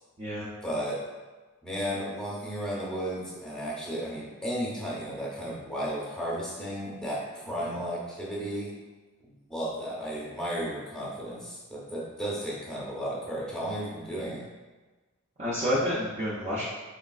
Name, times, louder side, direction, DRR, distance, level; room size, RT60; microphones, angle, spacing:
voice 1, 0.6-1.0 1.6-8.7 9.5-14.4, equal, 5° left, -5 dB, 0.8 m, -34 dB
voice 2, 15.4-16.6, equal, 30° right, -8 dB, 0.6 m, -29 dB
5.0 x 3.3 x 2.3 m, 1.3 s
head